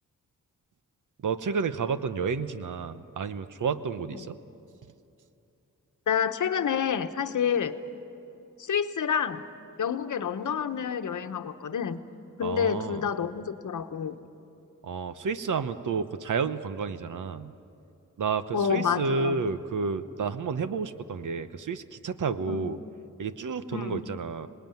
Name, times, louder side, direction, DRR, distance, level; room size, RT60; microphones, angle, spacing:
voice 1, 1.2-4.4 12.4-13.1 14.8-17.5 18.2-22.8 23.2-24.5, right 5 dB, 70° right, 11 dB, 1.0 m, -31 dB
voice 2, 6.1-7.7 8.6-9.4 9.8-12.0 12.4-14.2 18.5-19.4 22.5-22.7 23.7-24.0, left 7 dB, 70° left, 9 dB, 1.1 m, -28 dB
26.0 x 20.0 x 9.3 m, 2.7 s
wide cardioid pair, 145°, 32 cm